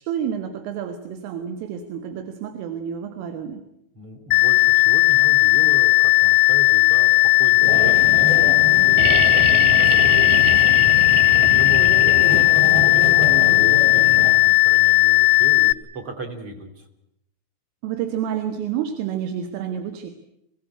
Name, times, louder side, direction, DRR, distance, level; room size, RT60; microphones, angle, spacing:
voice 1, 0.1-3.6 17.8-20.1, right 9 dB, 90° right, 7 dB, 4.2 m, -29 dB
voice 2, 3.9-10.7 11.3-16.9, right 2 dB, 35° right, 5 dB, 3.0 m, -36 dB
sound 1, 4.3-15.7, left 25 dB, 70° left, 2.1 m, -16 dB
sound 2, 7.6-14.3, left 1 dB, 50° right, 7.8 m, -28 dB
sound 3, 9.0-12.7 14.5-14.6, right 5 dB, 70° right, 3.8 m, -27 dB
24.0 x 17.5 x 9.9 m, 0.81 s
omnidirectional pair, 5.6 m